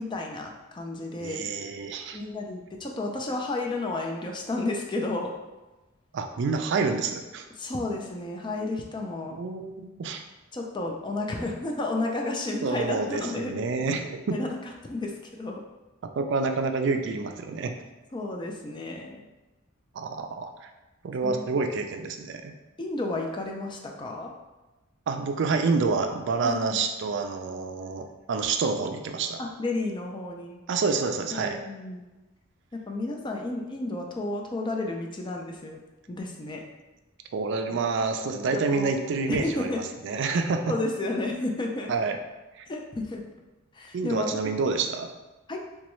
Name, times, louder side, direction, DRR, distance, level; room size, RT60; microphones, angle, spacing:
voice 1, 0.0-1.5 2.1-5.3 7.6-9.4 10.5-13.5 14.3-14.6 14.9-15.6 18.1-19.3 21.2-21.5 22.8-24.3 26.4-26.8 29.4-30.6 31.3-32.0 32.7-35.8 36.1-36.6 37.7-37.9 38.5-38.9 39.3-39.8 40.7-41.9 42.7-43.2 43.7-44.6 45.5-45.6, left 2 dB, 25° left, 1 dB, 0.4 m, -32 dB
voice 2, 1.2-2.2 6.1-7.5 9.3-10.2 12.6-14.4 16.2-17.7 19.9-20.5 21.0-22.6 25.1-29.4 30.7-31.6 37.3-40.7 41.9-42.2 42.6-42.7 43.9-45.1, right 4 dB, 60° right, 6 dB, 0.3 m, -28 dB
4.0 x 2.3 x 3.0 m, 1.1 s
head